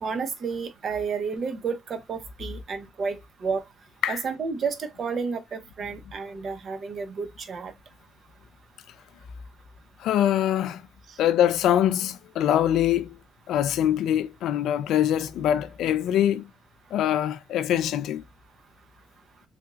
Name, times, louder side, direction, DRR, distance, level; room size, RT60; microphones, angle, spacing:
voice 1, 0.0-3.6 4.1-7.7, right 5 dB, 55° right, 0.6 m, -31 dB
voice 2, 10.0-10.8 11.2-13.2 13.5-16.5 16.9-18.2, left 11 dB, 80° left, 0.3 m, -23 dB
3.4 x 2.9 x 2.3 m
cardioid pair, 90°, 0 cm